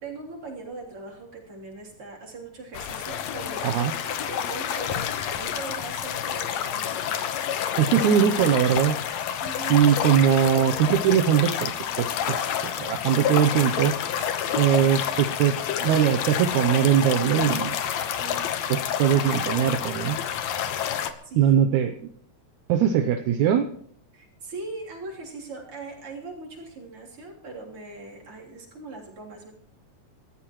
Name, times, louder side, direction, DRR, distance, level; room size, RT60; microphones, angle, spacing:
voice 1, 0.0-7.1 9.4-9.9 21.2-21.9 24.1-29.5, right 3 dB, 45° right, -2 dB, 4.2 m, -40 dB
sound 1, 2.7-21.1, left 9 dB, 70° left, 2.2 m, -29 dB
voice 2, 3.6-3.9 7.8-9.0 9.7-11.7 12.0-12.4 12.8-13.9 14.5-17.8 18.2-20.2 21.4-21.9 22.7-23.7, right 9 dB, 80° right, 7 dB, 2.2 m, -21 dB
26.5 x 13.5 x 3.1 m, 0.63 s
omnidirectional pair, 3.4 m